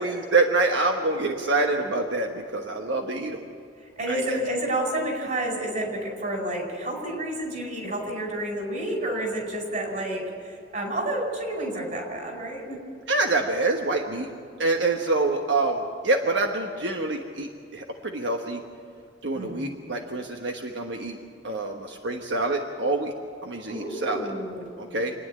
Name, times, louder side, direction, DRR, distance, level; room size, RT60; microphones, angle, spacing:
voice 1, 0.0-3.4 4.1-4.4 13.1-14.3 14.6-18.6 19.2-21.2 21.4-23.1 23.4-24.2 24.8-25.1, right 3 dB, 90° right, 3 dB, 1.3 m, -26 dB
voice 2, 4.0-12.8 19.3-19.7 23.7-24.7, right 1 dB, 50° right, 2 dB, 5.0 m, -30 dB
27.5 x 9.8 x 9.6 m, 2.3 s
head